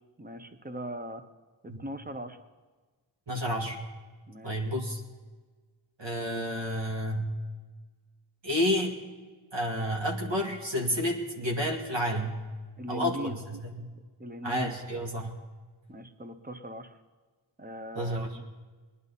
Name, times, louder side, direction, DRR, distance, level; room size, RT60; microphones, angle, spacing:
voice 1, 0.2-1.2 1.6-2.4 4.3-4.7 12.8-13.4 14.2-14.7 15.9-17.0 17.6-18.5, equal, 20° right, 8 dB, 1.1 m, -39 dB
voice 2, 3.3-3.8 4.4-5.0 6.0-7.4 8.4-9.0 9.5-12.4 12.9-13.9 14.4-15.3 17.9-18.3, equal, 70° right, 0 dB, 2.1 m, -30 dB
19.0 x 11.0 x 4.1 m, 1.4 s
wide cardioid pair, 55°, 45 cm